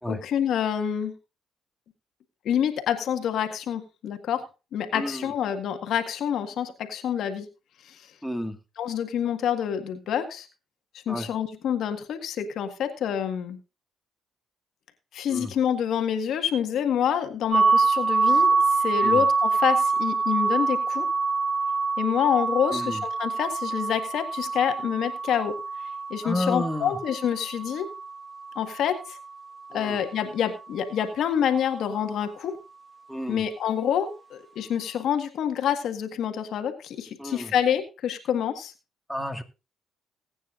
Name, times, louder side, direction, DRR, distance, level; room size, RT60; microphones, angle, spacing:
voice 1, 0.1-1.1 2.4-7.5 7.8-8.1 8.8-10.5 11.0-13.6 15.1-21.1 22.0-25.5 26.1-27.9 28.5-29.2 29.7-32.6 33.3-38.7, left 9 dB, 70° left, 7 dB, 1.7 m, -27 dB
voice 2, 4.9-5.3 8.2-8.6 11.1-11.3 15.3-15.5 19.0-19.2 22.7-23.0 26.2-27.0 29.7-30.0 33.1-33.4 37.2-37.5 39.1-39.4, left 1 dB, ahead, 4 dB, 1.9 m, -31 dB
sound 1, 17.5-29.3, right 4 dB, 35° right, 1.5 m, -25 dB
19.5 x 9.2 x 2.6 m, 0.29 s
cardioid pair, 80°, 0 cm